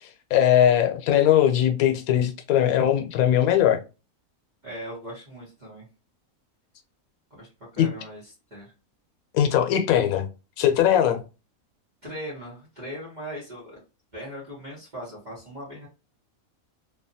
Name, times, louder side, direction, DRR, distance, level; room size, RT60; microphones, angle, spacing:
voice 1, 0.0-3.8 7.8-7.9 9.3-10.3 10.6-11.2, left 10 dB, 90° left, 1.1 m, -20 dB
voice 2, 4.6-5.9 7.3-8.7 12.0-13.8 14.1-15.9, equal, 35° right, 1.1 m, -39 dB
2.8 x 2.3 x 2.6 m
omnidirectional pair, 1.5 m